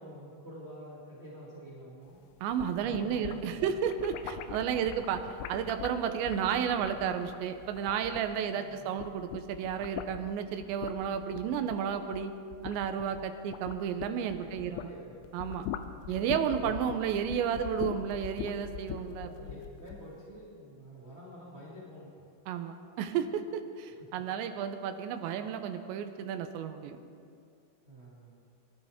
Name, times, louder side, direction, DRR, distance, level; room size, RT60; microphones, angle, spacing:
voice 1, 0.0-2.2 2.8-3.9 8.5-9.0 14.3-15.2 16.4-16.7 19.2-22.3 27.8-28.4, equal, 25° right, -8 dB, 1.4 m, -48 dB
sound 1, 2.4-8.6 8.9-15.0 15.3-20.1, left 10 dB, 85° left, 3.0 m, -42 dB
voice 2, 2.4-5.2 5.5-12.3 12.6-14.8 15.3-15.7 16.1-19.3 22.5-27.0, right 8 dB, 80° right, 8 dB, 3.0 m, -32 dB
24.0 x 12.5 x 3.6 m, 2.5 s
omnidirectional pair, 5.3 m